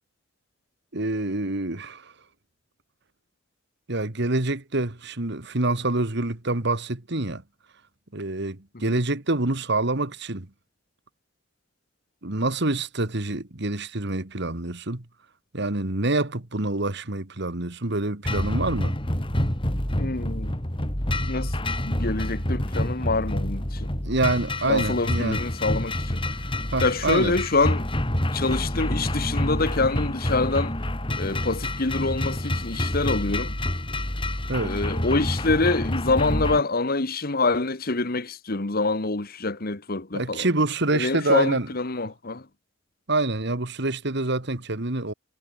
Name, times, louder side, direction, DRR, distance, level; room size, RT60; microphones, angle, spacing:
voice 1, 0.9-2.1 3.9-7.4 8.1-10.5 12.2-15.0 15.5-19.0 24.0-25.4 26.7-27.3 34.5-34.8 40.1-41.7 43.1-45.1, right 2 dB, 60° right, 2.0 m, -26 dB
sound 1, 18.2-36.6, left 1 dB, 25° left, 3.0 m, -27 dB
voice 2, 20.0-20.6 21.2-21.6 21.8-23.9 24.6-26.4 26.8-27.9 28.3-30.8 31.2-33.6 34.6-40.5 40.9-42.5, left 3 dB, 50° left, 1.5 m, -26 dB
head